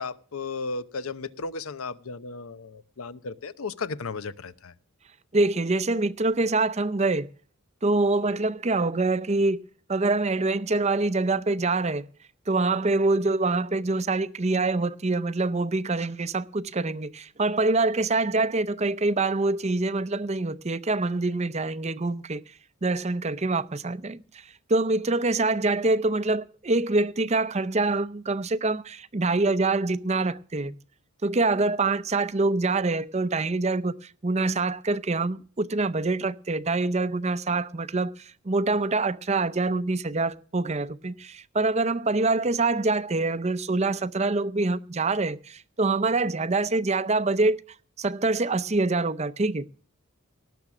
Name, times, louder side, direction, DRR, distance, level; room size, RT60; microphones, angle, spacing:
voice 1, 0.0-4.7, left 4 dB, 75° left, 0.8 m, -35 dB
voice 2, 5.3-7.3 7.8-9.6 9.9-12.1 12.5-22.4 22.8-24.4 24.7-30.7 31.2-47.6 48.0-49.6, right 3 dB, 30° right, 0.6 m, -25 dB
18.5 x 7.2 x 6.1 m
head